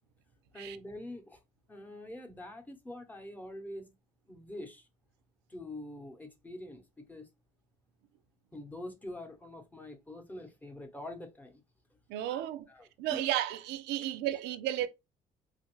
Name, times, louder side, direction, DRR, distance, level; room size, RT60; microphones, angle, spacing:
voice 1, 0.5-1.4 1.7-3.9 4.3-4.9 5.5-7.3 8.5-11.6 12.3-13.2, left 1 dB, 10° left, 0.8 m, -45 dB
voice 2, 12.1-12.7 13.0-14.9, right 12 dB, 90° right, 0.4 m, -33 dB
3.3 x 2.5 x 3.0 m
cardioid pair, 110°, 17 cm